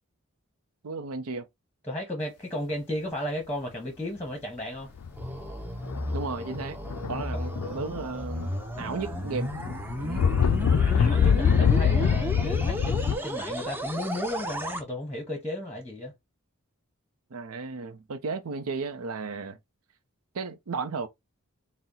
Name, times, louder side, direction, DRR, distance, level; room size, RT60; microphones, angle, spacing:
voice 1, 0.8-1.5 6.1-6.8 7.1-9.5 10.0-10.3 17.3-19.6 20.3-21.1, right 4 dB, 80° right, 0.6 m, -34 dB
voice 2, 1.8-4.9 10.8-16.1, left 1 dB, 10° left, 0.9 m, -34 dB
sound 1, 4.7-14.8, equal, 10° right, 0.5 m, -34 dB
sound 2, 5.0-5.3 5.8-6.3 6.8-8.0 8.4-13.2, left 7 dB, 85° left, 0.4 m, -24 dB
4.1 x 2.1 x 3.8 m
head